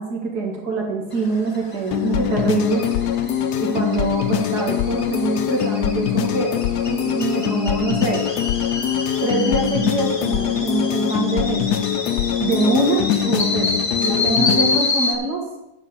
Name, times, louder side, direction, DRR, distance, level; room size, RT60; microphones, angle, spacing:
voice 1, 0.0-2.9 3.6-6.6 6.8-8.2 9.2-11.8 12.4-15.4, right 3 dB, 75° right, -1 dB, 2.8 m, -24 dB
sound 1, 1.1-15.2, left 3 dB, 25° left, 0.8 m, -28 dB
sound 2, 1.9-14.8, left 10 dB, 75° left, 1.2 m, -23 dB
9.4 x 5.6 x 6.9 m, 0.94 s
omnidirectional pair, 1.7 m